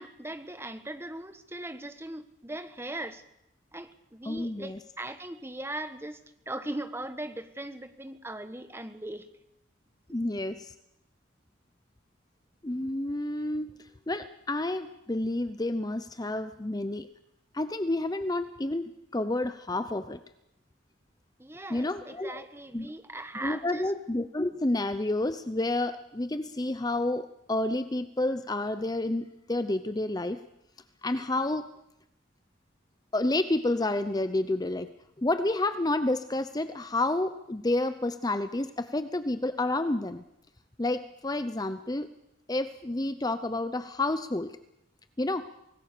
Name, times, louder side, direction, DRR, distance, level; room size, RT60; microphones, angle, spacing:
voice 1, 0.0-3.2 3.7-6.2 6.5-9.3 21.4-23.9, right 1 dB, 15° right, 9 dB, 1.3 m, -39 dB
voice 2, 4.3-4.8 10.1-10.7 12.6-13.7 14.1-17.1 17.5-20.2 21.7-22.4 22.7-22.9 23.4-30.4 31.0-31.7 33.1-34.9 35.2-40.2 40.8-42.1 42.5-44.6 45.2-45.5, left 2 dB, 20° left, 11 dB, 0.7 m, -30 dB
25.0 x 18.5 x 6.8 m, 0.84 s
head